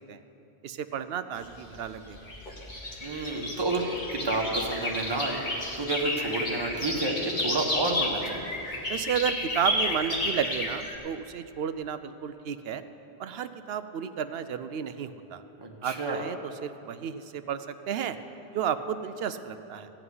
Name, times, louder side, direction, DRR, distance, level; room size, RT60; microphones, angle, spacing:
voice 1, 0.6-2.3 8.9-12.8 13.2-15.4 15.8-18.2 18.5-19.9, right 8 dB, 70° right, 11 dB, 0.8 m, -32 dB
sound 1, 1.4-10.9, left 1 dB, 45° left, 1.8 m, -32 dB
voice 2, 3.0-8.4 15.6-16.2, right 2 dB, 25° right, 0 dB, 1.3 m, -30 dB
15.5 x 5.9 x 9.5 m, 2.9 s
omnidirectional pair, 1.1 m